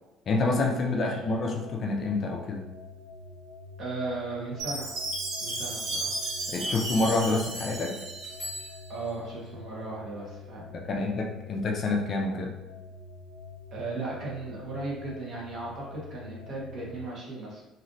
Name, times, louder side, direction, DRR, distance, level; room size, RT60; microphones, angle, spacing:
voice 1, 0.3-2.6 6.5-7.9 10.7-12.5, left 3 dB, 35° left, 1 dB, 0.4 m, -27 dB
voice 2, 0.8-1.2 3.8-4.9 5.4-6.2 6.4-6.8 8.9-11.1 13.7-17.6, right 2 dB, 45° right, -4 dB, 1.0 m, -37 dB
sound 1, 0.9-17.0, left 3 dB, 20° right, 1.4 m, -46 dB
Chime, 4.6-8.7, right 2 dB, 80° right, 0.8 m, -34 dB
sound 2, 6.2-9.3, left 1 dB, 5° left, 1.4 m, -44 dB
3.1 x 2.5 x 2.5 m, 1.0 s
cardioid pair, 160°, 0 cm